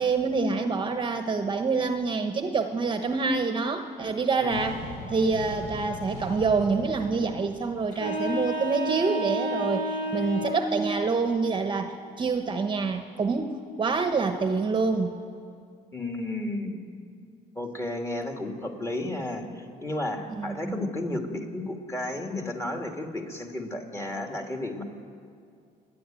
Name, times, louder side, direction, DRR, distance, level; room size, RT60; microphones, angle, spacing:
voice 1, 0.0-4.8 5.1-15.1 20.4-20.8, right 4 dB, 30° right, 7 dB, 1.1 m, -26 dB
voice 2, 4.4-4.7 15.9-16.8 17.6-24.8, left 1 dB, 15° left, 3 dB, 2.5 m, -33 dB
sound 1, 4.5-8.5, left 1 dB, 75° left, 5.5 m, -40 dB
sound 2, 7.9-10.9, equal, 55° left, 4.7 m, -30 dB
28.0 x 10.5 x 9.1 m, 2.3 s
cardioid pair, 110°, 17 cm